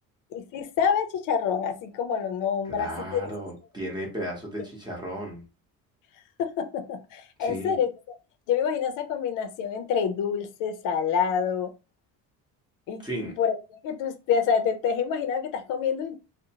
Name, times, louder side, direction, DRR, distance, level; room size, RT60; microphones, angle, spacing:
voice 1, 0.3-3.2 6.4-7.9 8.5-11.7 12.9-13.6 13.8-16.2, left 7 dB, 60° left, 9 dB, 0.5 m, -27 dB
voice 2, 2.7-5.4 7.4-7.8 13.0-13.3, right 1 dB, 10° right, -1 dB, 0.8 m, -34 dB
2.7 x 2.0 x 2.8 m, 0.30 s
cardioid pair, 145°, 36 cm